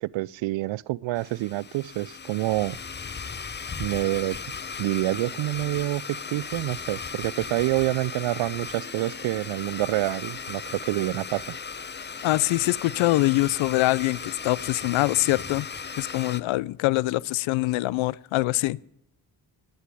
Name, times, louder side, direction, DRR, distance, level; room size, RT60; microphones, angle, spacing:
voice 1, 0.0-2.8 3.8-4.4 4.8-6.0 6.3-11.6, right 18 dB, 75° right, 0.5 m, -27 dB
Domestic sounds home sounds, 1.1-16.4, left 5 dB, 25° left, 0.7 m, -37 dB
voice 2, 12.2-15.7 16.0-18.8, left 19 dB, 85° left, 0.5 m, -24 dB
12.0 x 8.1 x 9.8 m
supercardioid pair, 45°, 46 cm